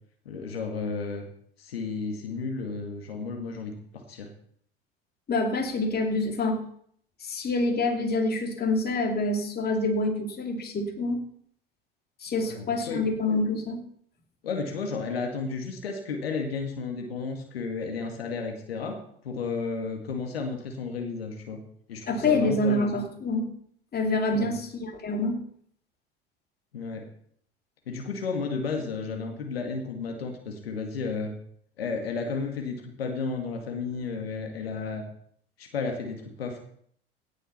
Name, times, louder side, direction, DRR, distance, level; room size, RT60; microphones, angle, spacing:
voice 1, 0.3-1.2 1.6-3.7 4.1-4.3 12.4-13.0 14.4-19.0 19.2-21.6 21.9-22.8 24.3-24.5 26.7-27.1 27.9-31.4 31.8-35.0 35.6-36.6, left 4 dB, 80° left, 3 dB, 2.1 m, -33 dB
voice 2, 5.3-6.6 7.2-11.2 12.2-13.8 22.1-23.5 23.9-25.4, left 2 dB, 30° left, 3 dB, 3.0 m, -26 dB
17.0 x 6.6 x 5.7 m, 0.63 s
hypercardioid pair, 75°, 30 cm